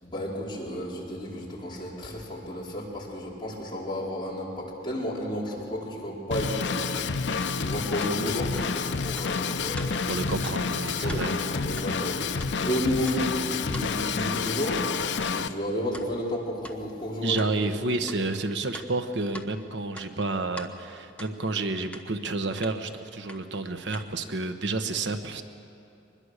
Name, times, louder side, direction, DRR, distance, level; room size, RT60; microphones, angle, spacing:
voice 1, 0.0-6.8 7.6-10.0 11.0-14.8 15.2-17.5, equal, 25° left, -5 dB, 4.7 m, -32 dB
Drum kit / Drum, 6.3-15.5, left 5 dB, 80° left, 0.7 m, -29 dB
sound 1, 6.8-7.0 7.4-7.6 8.0-8.1 8.6-8.7 9.2-9.3 9.8-9.9 10.4-10.6 11.0-11.2 11.8-11.9 12.3-12.6 13.1-13.2 13.7-13.9 14.5-14.6 15.2-15.3 15.9-16.1 16.6-16.8 17.4-17.5 18.1-18.2 18.7-19.5 19.9-20.7 21.2-21.3 21.9-22.0 22.6-22.7 23.3-23.4 23.9-24.1, equal, 10° left, 1.1 m, -42 dB
voice 2, 10.1-11.3 17.2-25.4, right 3 dB, 90° right, 8 dB, 1.2 m, -30 dB
23.5 x 21.0 x 6.6 m, 2.7 s
head